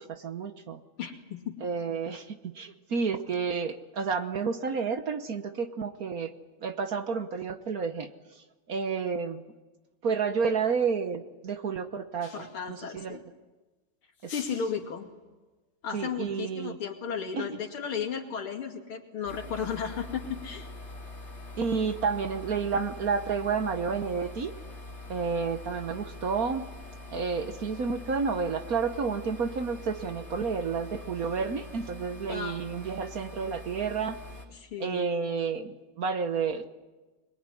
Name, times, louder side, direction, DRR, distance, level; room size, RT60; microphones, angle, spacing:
voice 1, 0.0-0.8 1.6-6.3 6.6-9.4 10.0-13.2 14.2-14.3 15.9-16.8 17.4-17.5 21.6-24.5 25.1-26.6 27.1-34.2 34.8-36.8, right 5 dB, 50° right, 8 dB, 1.3 m, -30 dB
voice 2, 1.0-1.6 12.4-13.2 14.3-15.1 15.8-20.7 32.3-32.6 34.5-35.1, left 6 dB, 85° left, 4 dB, 3.2 m, -34 dB
sound 1, 12.2-12.8 14.1-15.0, left 6 dB, 50° left, 1.7 m, -48 dB
sound 2, 19.3-34.5, left 2 dB, 30° left, 2.9 m, -44 dB
22.5 x 22.5 x 9.8 m, 1.2 s
omnidirectional pair, 2.3 m